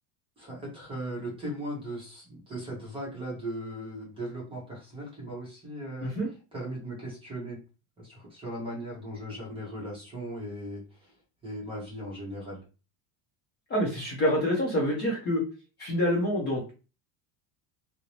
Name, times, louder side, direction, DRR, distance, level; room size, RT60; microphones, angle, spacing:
voice 1, 0.4-6.2 6.5-7.6 8.0-11.2 11.4-12.6, right 1 dB, 10° right, -4 dB, 0.7 m, -38 dB
voice 2, 13.7-15.4 15.8-16.7, equal, 25° left, -3 dB, 0.6 m, -27 dB
2.5 x 2.0 x 2.9 m, 0.33 s
cardioid pair, 165°, 44 cm